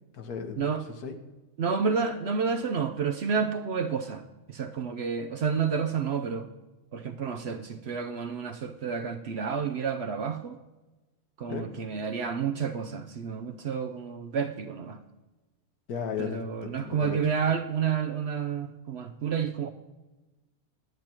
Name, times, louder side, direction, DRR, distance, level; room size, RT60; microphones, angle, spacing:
voice 1, 0.1-1.1 11.5-11.8 15.9-17.2, left 6 dB, 85° left, 6 dB, 1.6 m, -36 dB
voice 2, 1.6-6.5 6.9-10.6 11.4-15.0 16.2-19.7, right 6 dB, 60° right, 7 dB, 0.7 m, -30 dB
9.7 x 9.6 x 4.4 m, 1.1 s
omnidirectional pair, 1.6 m